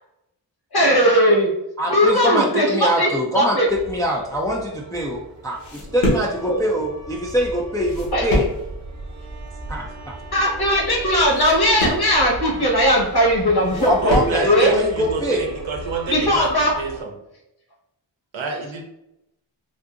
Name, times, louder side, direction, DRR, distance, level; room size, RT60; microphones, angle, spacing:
voice 1, 0.7-1.5 1.9-3.7 6.5-6.6 8.1-8.2 10.3-14.2 14.4-14.7 16.1-16.8, equal, 50° left, -3 dB, 1.2 m, -18 dB
voice 2, 1.8-8.4 9.7-10.1 13.7-15.5, equal, 10° left, -2 dB, 0.4 m, -24 dB
sound 1, 3.7-17.0, right 1 dB, 35° right, 0.7 m, -37 dB
sound 2, 4.9-14.5, left 1 dB, 65° left, 1.3 m, -28 dB
voice 3, 14.0-17.1 18.3-18.8, right 5 dB, 70° right, 2 dB, 0.7 m, -28 dB
3.7 x 2.5 x 2.5 m, 0.84 s
wide cardioid pair, 65°, 49 cm